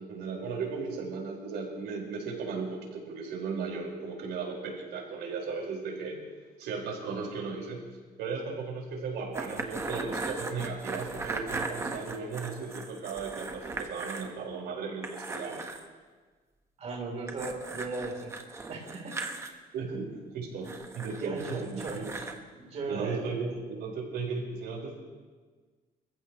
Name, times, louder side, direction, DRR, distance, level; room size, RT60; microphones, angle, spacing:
voice 1, 0.0-6.2 6.6-7.8 8.2-15.7 19.7-22.1 22.9-25.0, right 4 dB, 85° right, -1 dB, 4.9 m, -36 dB
sound 1, 9.3-14.3 14.6-14.7 15.0-15.8 17.3-19.5 20.6-22.4, right 3 dB, 15° right, 1.2 m, -38 dB
voice 2, 16.8-18.3 18.7-19.1 20.6-20.7 21.2-22.3 22.6-23.5, right 3 dB, 40° right, -1 dB, 3.5 m, -37 dB
27.5 x 15.0 x 3.1 m, 1.4 s
cardioid pair, 165°, 17 cm